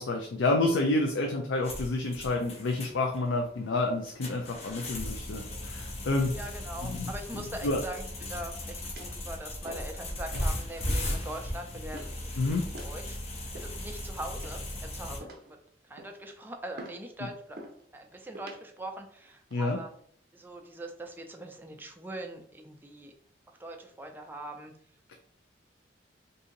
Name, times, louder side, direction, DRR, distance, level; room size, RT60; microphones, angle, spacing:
voice 1, 0.0-6.4 6.9-7.1 7.3-7.8 12.4-12.7 19.5-19.8 25.1-25.2, left 2 dB, 85° left, 2 dB, 0.4 m, -29 dB
sound 1, 1.6-15.2, left 1 dB, 35° left, 0.6 m, -37 dB
voice 2, 6.4-12.4 12.6-15.6 15.9-17.6 17.9-19.9 20.3-23.1 23.5-24.7, right 1 dB, 10° right, 3 dB, 0.4 m, -42 dB
sound 2, 8.2-8.6 9.0-9.2 9.6-10.0 10.3-10.6 11.0-11.2 11.9-12.2 12.7-13.0 13.5-14.0 14.4-14.8 15.2-15.5 16.0-16.3 16.8-17.0 17.6-17.8 18.3-18.6 19.3-19.6, right 1 dB, 55° right, 0.6 m, -46 dB
2.7 x 2.6 x 3.8 m, 0.62 s
head